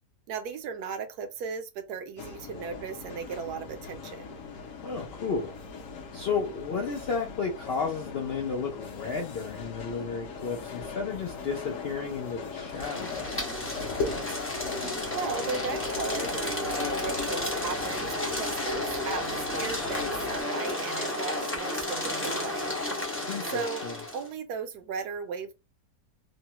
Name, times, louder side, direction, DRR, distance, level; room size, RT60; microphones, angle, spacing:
voice 1, 0.3-4.4 15.1-22.7 23.2-23.9 24.1-25.5, right 6 dB, 75° right, 1.1 m, -36 dB
sound 1, 2.2-20.4, left 4 dB, 60° left, 0.9 m, -39 dB
voice 2, 4.8-5.6 6.1-13.4 23.3-23.9, left 5 dB, 85° left, 0.5 m, -33 dB
sound 2, 12.7-24.3, left 1 dB, 20° left, 0.4 m, -32 dB
3.0 x 2.1 x 2.8 m
omnidirectional pair, 1.8 m